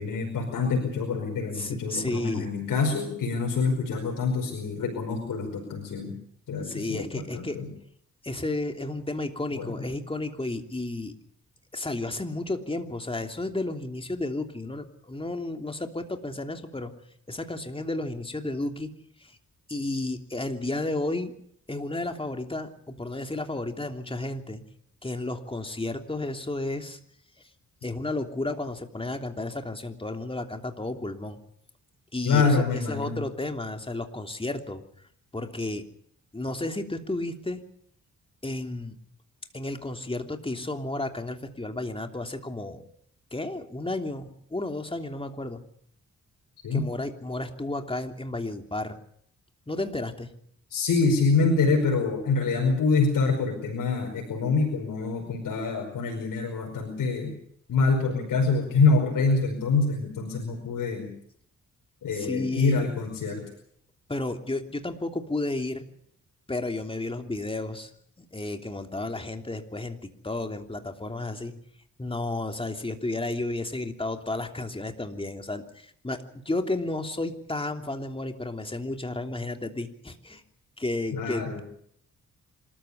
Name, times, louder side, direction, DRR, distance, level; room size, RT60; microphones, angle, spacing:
voice 1, 0.0-6.1 6.5-7.7 9.5-9.7 32.3-33.2 46.6-46.9 50.7-57.4 57.7-61.1 62.0-63.4 81.1-81.6, left 4 dB, 80° left, 1 dB, 5.3 m, -26 dB
voice 2, 1.5-2.5 6.6-7.6 8.2-11.1 11.7-16.9 17.3-18.9 19.2-19.4 19.7-21.3 21.7-24.6 25.0-27.0 27.8-31.4 32.1-34.8 35.3-35.9 36.3-37.6 38.4-39.0 39.5-42.8 43.3-45.6 46.7-49.0 49.7-50.3 62.1-62.9 64.1-65.8 66.5-67.9 68.2-71.5 72.0-80.4 80.8-81.6, left 2 dB, 15° left, 5 dB, 3.1 m, -32 dB
26.5 x 14.0 x 8.6 m, 0.67 s
cardioid pair, 70°, 32 cm